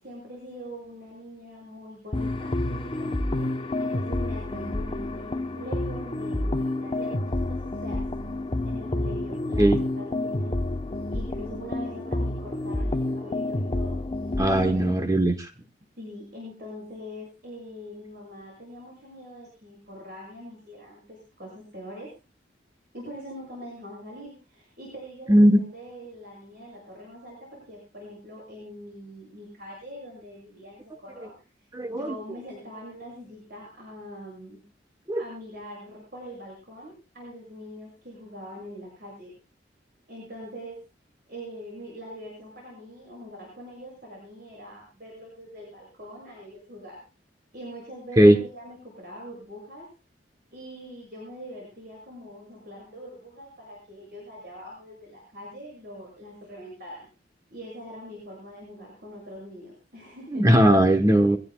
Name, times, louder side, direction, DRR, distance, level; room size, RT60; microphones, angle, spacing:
voice 1, 0.0-8.0 8.6-10.5 11.1-14.0 14.7-14.9 16.0-22.1 22.9-31.3 31.9-34.6 35.2-39.3 40.1-40.8 41.3-47.0 47.5-49.9 50.5-57.1 57.5-60.5, equal, 60° right, -3 dB, 7.0 m, -43 dB
sound 1, 2.1-14.9, left 1 dB, 30° left, 0.8 m, -29 dB
voice 2, 14.4-15.5 25.3-25.6 31.7-32.1 35.1-35.2 48.2-48.4 60.3-61.4, right 1 dB, 20° right, 6 dB, 1.0 m, -18 dB
23.5 x 17.0 x 2.3 m, 0.31 s
head